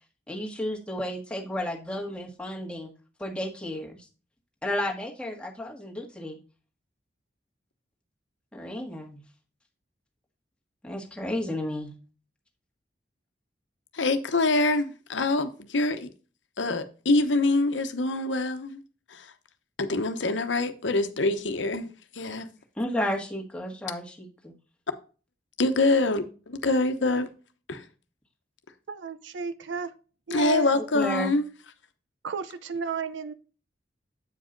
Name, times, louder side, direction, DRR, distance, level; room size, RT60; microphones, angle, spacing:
voice 1, 0.3-2.9 3.2-4.0 4.6-6.4 8.5-9.2 10.8-11.9 22.8-24.5 30.9-31.3, left 1 dB, 5° left, 1.5 m, -32 dB
voice 2, 13.9-16.1 16.6-18.8 19.1-19.3 19.8-22.5 25.6-27.3 27.7-27.8 30.3-31.5, left 2 dB, 85° left, 1.0 m, -25 dB
voice 3, 28.9-29.9 30.3-30.7 32.2-33.3, right 5 dB, 85° right, 0.6 m, -32 dB
8.3 x 5.1 x 3.8 m
head